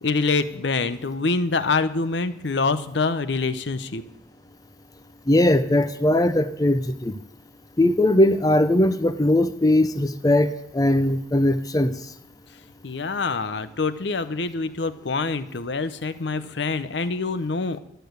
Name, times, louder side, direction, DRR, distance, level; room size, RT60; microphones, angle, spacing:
voice 1, 0.0-4.0 12.8-17.8, left 4 dB, 65° left, 12 dB, 0.7 m, -25 dB
voice 2, 5.3-7.1 7.8-10.5 10.7-11.9, left 1 dB, 20° left, 11 dB, 0.6 m, -19 dB
12.0 x 6.8 x 8.0 m, 0.80 s
head